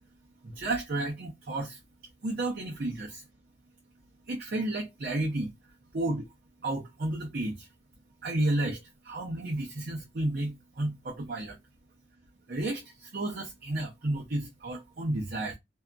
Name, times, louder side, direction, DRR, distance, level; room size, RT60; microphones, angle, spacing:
voice 1, 0.4-1.8 2.2-3.2 4.3-5.5 5.9-6.2 6.6-7.7 8.2-11.6 12.5-15.6, right 2 dB, 55° right, 0.6 m, -32 dB
2.7 x 2.5 x 2.2 m
head